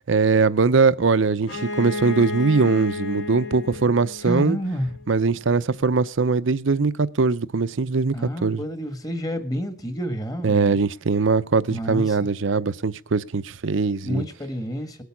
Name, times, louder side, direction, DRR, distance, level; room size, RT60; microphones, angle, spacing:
voice 1, 0.1-4.6 5.1-8.6 10.4-14.3, right 4 dB, 70° right, 0.7 m, -21 dB
Bowed string instrument, 1.4-5.1, left 2 dB, 70° left, 3.7 m, -32 dB
voice 2, 4.2-4.9 8.1-10.8 11.7-12.2 14.0-15.0, equal, 20° left, 1.6 m, -29 dB
19.5 x 8.2 x 6.0 m
head